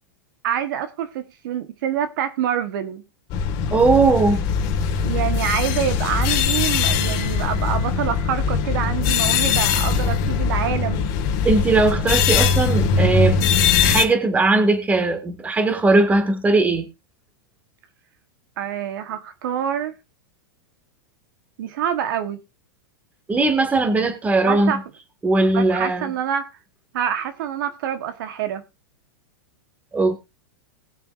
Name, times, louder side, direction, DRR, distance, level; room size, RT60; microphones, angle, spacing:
voice 1, 0.4-3.0 5.0-11.1 18.6-19.9 21.6-22.4 24.4-24.8 25.5-26.5 26.9-28.6, right 9 dB, 65° right, 1.3 m, -26 dB
sound 1, 3.3-14.0, left 5 dB, 45° left, 1.8 m, -21 dB
voice 2, 3.7-4.5 11.4-13.4 13.8-16.9 23.3-24.8 25.2-26.1 29.9-30.2, right 3 dB, 15° right, 1.9 m, -19 dB
19.5 x 7.0 x 2.5 m
supercardioid pair, 135°, 12 cm